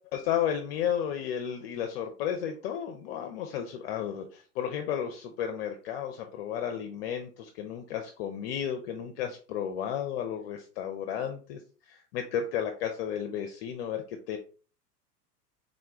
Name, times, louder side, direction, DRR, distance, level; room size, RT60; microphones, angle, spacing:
voice 1, 0.1-14.4, left 9 dB, 40° left, 5 dB, 0.5 m, -33 dB
3.6 x 2.2 x 3.6 m, 0.39 s
figure-of-eight pair, 90°, 48 cm